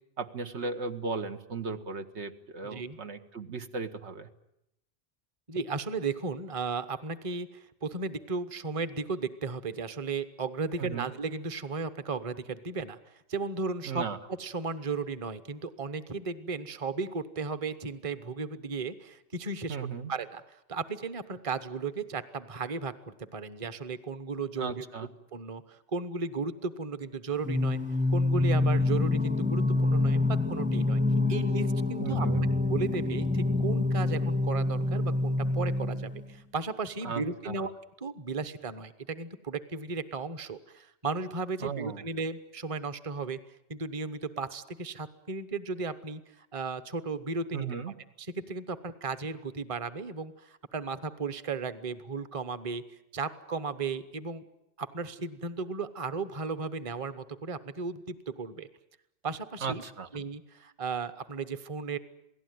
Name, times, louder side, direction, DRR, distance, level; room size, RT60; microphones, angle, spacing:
voice 1, 0.2-4.3 10.8-11.1 13.8-14.2 19.7-20.1 24.6-25.1 32.0-32.5 37.0-37.7 41.6-42.0 47.5-47.9 59.6-60.1, right 5 dB, 85° right, 7 dB, 1.6 m, -36 dB
voice 2, 2.6-3.0 5.5-14.0 14.4-24.8 25.3-27.8 28.1-31.0 31.3-32.3 32.7-37.7 38.0-43.4 43.7-52.8 53.1-54.4 54.8-58.7 59.2-59.8 60.1-62.0, right 4 dB, 30° right, 12 dB, 1.0 m, -35 dB
Singing, 27.4-36.3, left 2 dB, 10° right, 0.8 m, -27 dB
27.5 x 17.5 x 9.4 m, 0.83 s
omnidirectional pair, 1.1 m